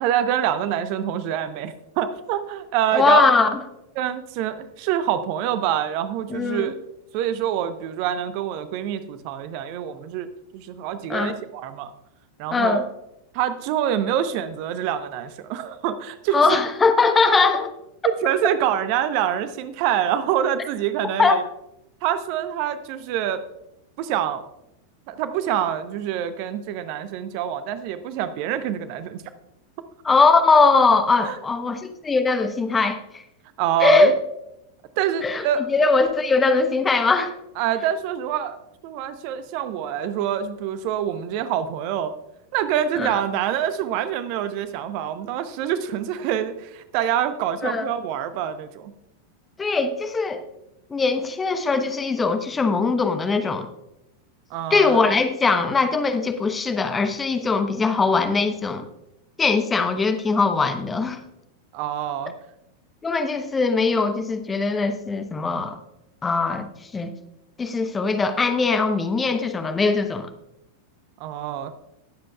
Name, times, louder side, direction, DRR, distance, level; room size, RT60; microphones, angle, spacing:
voice 1, 0.0-3.3 4.0-6.7 7.1-10.3 10.5-11.9 12.4-12.8 13.3-16.6 18.0-21.4 22.0-23.4 24.0-24.4 25.1-29.2 31.2-31.4 33.6-34.1 35.0-35.7 37.6-38.6 38.8-42.1 42.5-48.9 54.5-55.0 61.7-62.3 71.2-71.7, right 10 dB, 45° right, 12 dB, 0.7 m, -26 dB
voice 2, 2.9-3.6 6.3-6.7 11.1-11.4 12.5-12.8 16.3-17.7 21.2-21.4 30.0-33.2 33.8-34.1 35.2-37.3 43.0-43.1 47.6-47.9 49.6-50.4 50.9-53.7 54.7-58.9 59.4-61.2 63.0-65.8 66.2-66.7 66.9-67.1 67.6-70.3, left 4 dB, 15° left, 8 dB, 0.9 m, -20 dB
20.0 x 7.5 x 2.4 m, 0.85 s
figure-of-eight pair, 90°, 0 cm